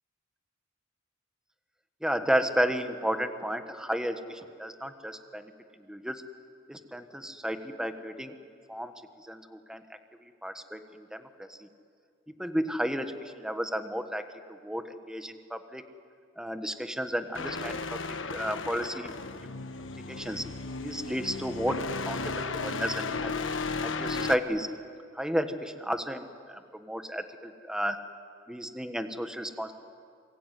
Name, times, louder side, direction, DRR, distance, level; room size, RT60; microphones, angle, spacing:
voice 1, 2.0-5.5 5.9-6.2 6.7-8.3 8.7-8.9 9.3-9.8 10.4-11.7 12.4-15.8 16.4-19.1 19.4-19.6 20.1-20.4 20.8-23.3 23.8-24.7 25.1-28.0 28.5-29.7, equal, 5° right, 8 dB, 1.4 m, -32 dB
sound 1, 17.3-24.4, left 4 dB, 90° left, 1.3 m, -34 dB
28.0 x 22.0 x 9.3 m, 2.2 s
head